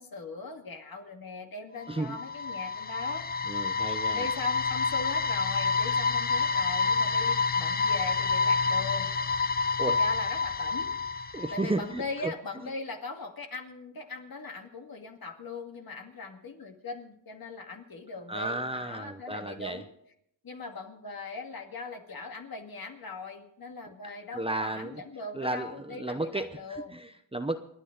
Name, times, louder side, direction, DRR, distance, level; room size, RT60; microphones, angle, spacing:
voice 1, 0.0-3.3 4.1-9.1 10.0-19.9 20.4-27.0, left 3 dB, 55° left, 4 dB, 2.2 m, -40 dB
sound 1, 1.9-11.9, left 4 dB, 25° left, 0.5 m, -28 dB
voice 2, 3.5-4.3 9.8-10.0 11.3-12.3 18.3-19.8 24.3-25.0 25.3-27.6, right 2 dB, 15° right, 8 dB, 0.8 m, -33 dB
28.0 x 10.0 x 3.9 m, 0.73 s
cardioid pair, 95°, 43 cm